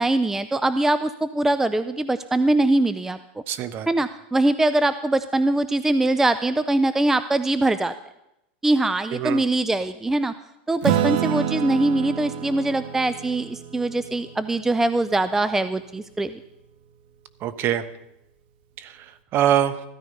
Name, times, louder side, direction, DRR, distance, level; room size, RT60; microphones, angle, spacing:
voice 1, 0.0-3.2 3.9-7.9 8.6-10.3 10.7-16.4, right 2 dB, 5° right, 13 dB, 0.4 m, -22 dB
voice 2, 3.5-3.9 9.1-9.4 17.4-17.8 18.8-19.8, right 10 dB, 40° right, 14 dB, 1.0 m, -24 dB
Acoustic guitar / Strum, 10.8-15.7, right 10 dB, 60° right, 1.4 m, -28 dB
15.0 x 13.0 x 5.4 m, 0.86 s
supercardioid pair, 135°, 6 cm